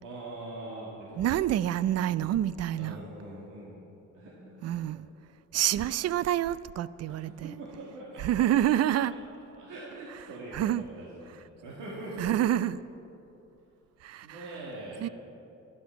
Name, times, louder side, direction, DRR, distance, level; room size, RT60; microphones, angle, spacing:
voice 1, 0.0-1.2 2.8-3.8 4.1-4.9 7.1-9.0 9.6-12.3 14.2-15.0, right 1 dB, 80° right, 2.2 m, -43 dB
voice 2, 1.2-3.0 4.6-5.0 5.5-7.5 8.2-9.1 10.5-10.8 12.2-12.8 14.0-14.4 15.0-15.1, right 12 dB, 55° right, 0.4 m, -27 dB
11.5 x 11.0 x 5.8 m
cardioid pair, 90°, 30 cm